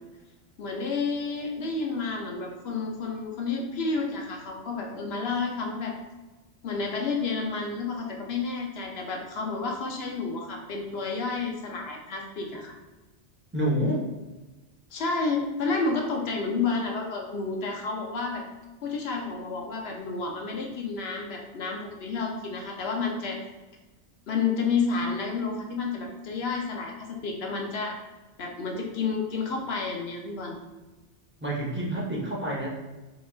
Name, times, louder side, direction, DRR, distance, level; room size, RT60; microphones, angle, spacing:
voice 1, 0.6-5.9 6.6-12.8 14.9-18.4 18.8-23.4 24.3-28.0 28.4-30.6, left 4 dB, 70° left, 1 dB, 0.9 m, -30 dB
voice 2, 13.5-14.0 31.4-32.7, right 1 dB, 10° right, -5 dB, 0.7 m, -28 dB
5.9 x 2.4 x 2.4 m, 1.2 s
omnidirectional pair, 1.1 m